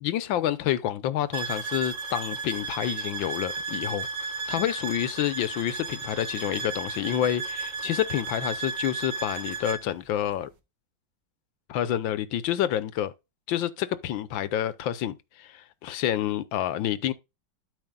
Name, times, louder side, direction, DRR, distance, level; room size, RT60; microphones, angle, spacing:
voice 1, 0.0-4.1 4.5-10.5 11.7-13.1 13.5-17.1, left 11 dB, 85° left, 1.6 m, -28 dB
sound 1, 1.3-9.8, right 4 dB, 75° right, 2.2 m, -34 dB
12.5 x 5.5 x 2.3 m
omnidirectional pair, 2.0 m